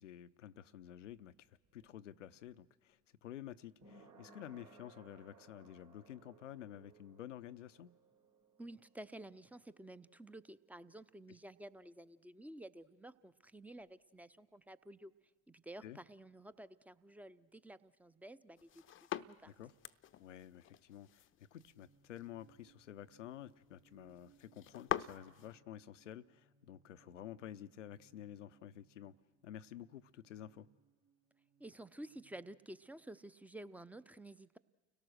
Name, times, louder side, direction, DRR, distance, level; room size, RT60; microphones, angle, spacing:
voice 1, 0.0-7.9 15.8-16.0 19.4-19.7 20.2-29.1 29.4-30.7, left 11 dB, 85° left, 0.6 m, -51 dB
sound 1, 1.1-12.2 12.5-12.6, right 3 dB, 50° right, 3.6 m, -65 dB
voice 2, 8.6-15.1 15.5-19.5 31.6-34.6, right 1 dB, 5° right, 0.6 m, -52 dB
sound 2, 18.6-25.5, left 11 dB, 35° left, 0.6 m, -45 dB
sound 3, 21.6-33.6, right 5 dB, 65° right, 3.5 m, -71 dB
29.5 x 18.0 x 6.4 m
hypercardioid pair, 65°, 36 cm